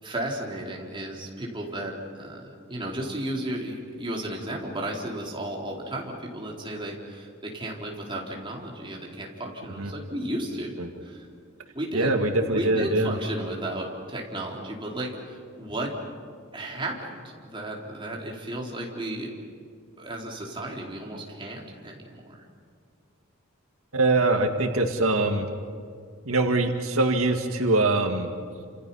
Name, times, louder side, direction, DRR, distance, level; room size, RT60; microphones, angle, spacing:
voice 1, 0.0-10.7 11.0-11.3 11.7-12.1 12.5-15.9 16.5-17.2 17.5-19.3 20.0-22.4, right 1 dB, 25° right, -2 dB, 4.0 m, -34 dB
voice 2, 11.9-13.1 23.9-25.5 26.3-28.3, right 2 dB, 90° right, 4 dB, 1.9 m, -23 dB
30.0 x 27.5 x 5.6 m, 2.2 s
head